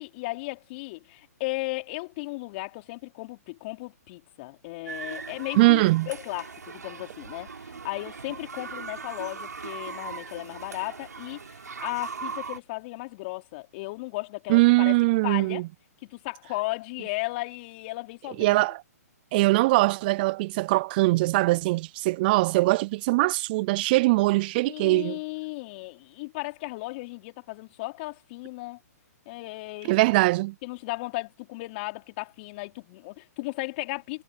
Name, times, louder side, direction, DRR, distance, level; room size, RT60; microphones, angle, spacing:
voice 1, 0.0-15.0 15.2-15.7 16.0-18.6 24.7-28.8 29.3-29.9 30.6-34.2, left 23 dB, 40° left, 4.1 m, -35 dB
sound 1, 4.9-12.6, right 5 dB, 80° right, 6.3 m, -39 dB
voice 2, 5.6-6.1 14.5-15.6 18.4-18.7 19.3-25.2 29.9-30.5, right 21 dB, 35° right, 0.4 m, -22 dB
hypercardioid pair, 135°, 9 cm